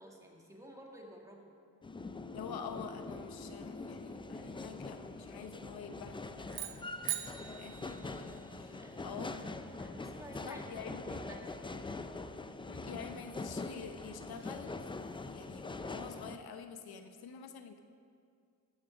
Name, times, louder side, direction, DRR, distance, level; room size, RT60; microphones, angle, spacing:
voice 1, 0.0-1.5 8.6-12.2, right 1 dB, 10° right, 0 dB, 2.0 m, -53 dB
sound 1, 1.8-16.4, left 3 dB, 15° left, 0.5 m, -43 dB
voice 2, 2.3-9.3 10.4-11.2 12.7-17.8, left 6 dB, 80° left, 7 dB, 1.0 m, -48 dB
sound 2, 6.5-8.8, right 11 dB, 85° right, 1.0 m, -42 dB
14.0 x 6.8 x 6.0 m, 2.3 s
cardioid pair, 95°, 36 cm